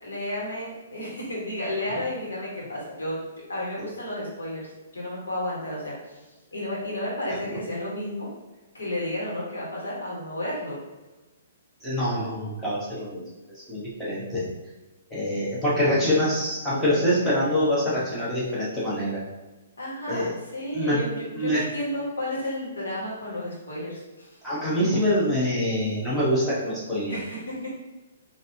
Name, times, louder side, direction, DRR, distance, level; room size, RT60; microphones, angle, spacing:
voice 1, 0.0-3.2 3.5-4.7 4.9-6.2 6.5-8.3 8.7-10.8 19.8-20.3 20.5-21.2 21.4-24.3 27.1-27.8, left 1 dB, 70° left, -5 dB, 1.4 m, -32 dB
voice 2, 11.8-13.2 13.5-14.4 15.1-19.2 20.1-20.3 20.7-21.0 21.3-21.6 24.4-27.2, equal, ahead, -10 dB, 1.2 m, -25 dB
3.9 x 2.6 x 2.8 m, 1.1 s
figure-of-eight pair, 120°, 0 cm